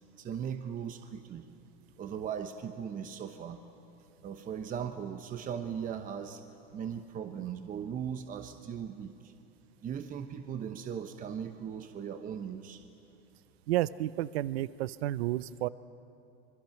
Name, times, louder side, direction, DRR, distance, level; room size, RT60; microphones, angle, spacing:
voice 1, 0.2-1.4 2.0-3.6 4.2-6.4 6.7-9.3 9.8-12.8, right 8 dB, 25° right, 8 dB, 1.0 m, -38 dB
voice 2, 13.7-15.7, right 15 dB, 85° right, 18 dB, 0.6 m, -31 dB
26.5 x 22.5 x 5.9 m, 2.8 s
supercardioid pair, 120°, 30 cm